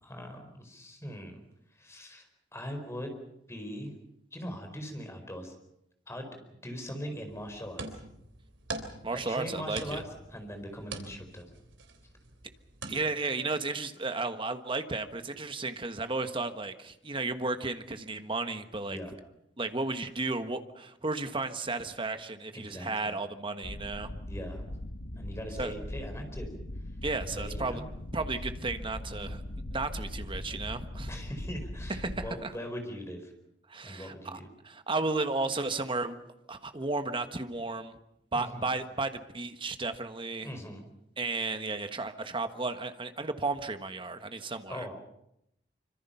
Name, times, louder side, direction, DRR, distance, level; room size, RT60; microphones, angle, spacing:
voice 1, 0.0-1.4 1.7-2.3 2.5-3.1 3.5-3.9 4.3-5.5 6.1-6.3 6.6-8.0 9.1-10.0 10.3-11.4 18.9-19.1 22.5-23.1 24.3-24.6 25.1-26.5 27.2-27.9 29.1-29.4 31.1-33.3 33.8-34.5 38.3-38.7 40.4-40.9 44.7-44.9, equal, 15° left, 5 dB, 4.7 m, -41 dB
sound 1, 7.3-12.9, right 3 dB, 80° right, 3.5 m, -44 dB
voice 2, 9.0-10.0 12.9-19.0 19.6-24.1 25.6-25.7 27.0-27.8 28.1-29.4 29.7-31.1 31.9-32.5 33.7-36.2 36.5-37.9 38.3-40.5 41.2-44.9, right 3 dB, 30° right, 8 dB, 1.4 m, -33 dB
sound 2, 23.6-32.3, left 1 dB, 80° left, 1.4 m, -40 dB
26.0 x 25.5 x 5.8 m, 0.79 s
head